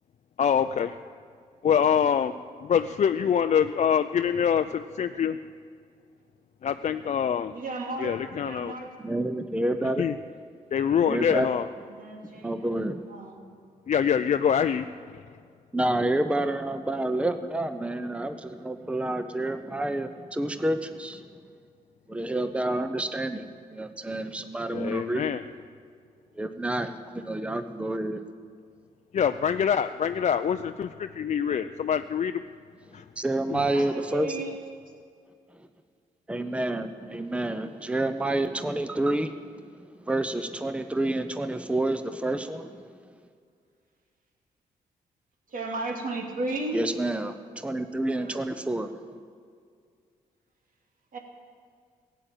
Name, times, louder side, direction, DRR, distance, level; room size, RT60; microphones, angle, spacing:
voice 1, 0.4-1.0 1.6-5.4 6.6-7.5 8.0-8.7 10.0-10.2 10.7-11.7 13.9-15.2 24.7-25.4 29.1-32.4 32.9-33.0 33.5-33.6, left 8 dB, 50° left, 9 dB, 0.5 m, -25 dB
voice 2, 7.5-8.9 11.9-12.7 13.1-13.3 33.7-34.5 45.5-46.8 48.2-48.5 51.1-51.2, right 2 dB, 60° right, 1 dB, 2.9 m, -34 dB
voice 3, 9.0-10.0 11.0-11.5 12.4-13.0 15.7-21.3 22.1-25.3 26.4-28.2 33.2-34.3 36.3-39.4 39.8-42.9 46.7-48.9, right 1 dB, 10° right, 9 dB, 0.9 m, -29 dB
15.5 x 9.1 x 9.0 m, 2.1 s
supercardioid pair, 55°, 16 cm